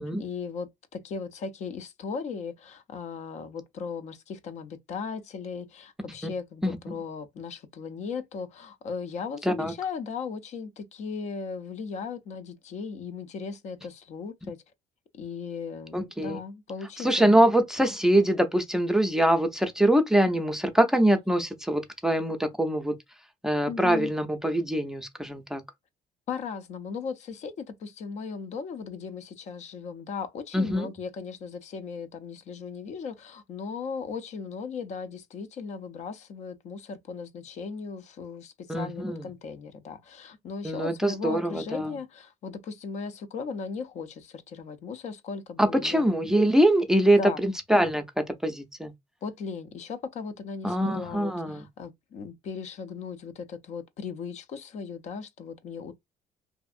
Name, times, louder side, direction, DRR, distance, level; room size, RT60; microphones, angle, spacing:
voice 1, 0.2-14.6 15.1-17.4 23.7-24.1 26.3-46.0 47.2-47.4 49.2-55.9, left 5 dB, 55° left, 0.5 m, -37 dB
voice 2, 15.9-16.4 17.0-22.9 23.4-25.6 30.5-30.9 38.7-39.2 40.6-42.0 45.6-48.9 50.6-51.6, right 1 dB, 5° right, 0.5 m, -24 dB
2.6 x 2.4 x 2.4 m
cardioid pair, 105°, 14 cm